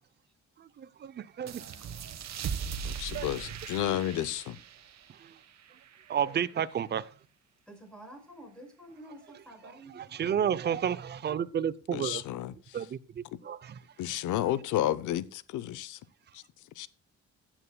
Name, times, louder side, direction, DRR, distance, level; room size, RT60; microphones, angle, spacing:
voice 1, 0.8-1.6 3.1-3.3 5.2-5.3 6.1-7.1 10.1-12.2 12.7-13.8, right 8 dB, 35° right, 0.5 m, -31 dB
sound 1, 1.5-6.7, right 7 dB, 60° right, 1.2 m, -40 dB
voice 2, 2.8-4.6 11.9-12.9 14.0-16.0 16.3-16.4 16.8-16.9, left 12 dB, 80° left, 0.7 m, -32 dB
voice 3, 7.7-10.0, right 1 dB, 5° left, 5.4 m, -49 dB
15.0 x 8.9 x 2.2 m
cardioid pair, 90°, 30 cm